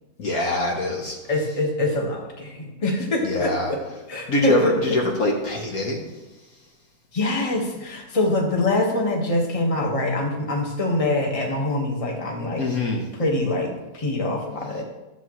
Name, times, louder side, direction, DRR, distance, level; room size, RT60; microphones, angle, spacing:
voice 1, 0.2-1.2 3.2-3.7 4.3-6.0 12.6-13.0, left 2 dB, 55° left, 0 dB, 1.5 m, -23 dB
voice 2, 1.3-3.8 4.1-5.0 7.1-12.6 13.1-14.8, left 2 dB, 20° left, 0 dB, 1.3 m, -24 dB
13.0 x 8.0 x 3.1 m, 1.1 s
omnidirectional pair, 2.0 m